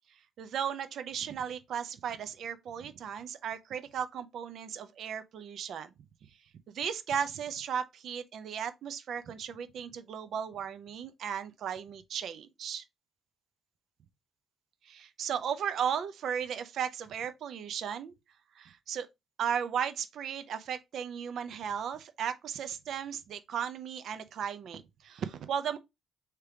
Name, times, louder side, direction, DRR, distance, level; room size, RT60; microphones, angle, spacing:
voice 1, 0.4-5.9 6.7-12.8 14.8-18.1 18.6-19.1 19.4-25.8, right 8 dB, 70° right, 0.5 m, -35 dB
3.4 x 2.9 x 4.7 m
cardioid pair, 90°, 0 cm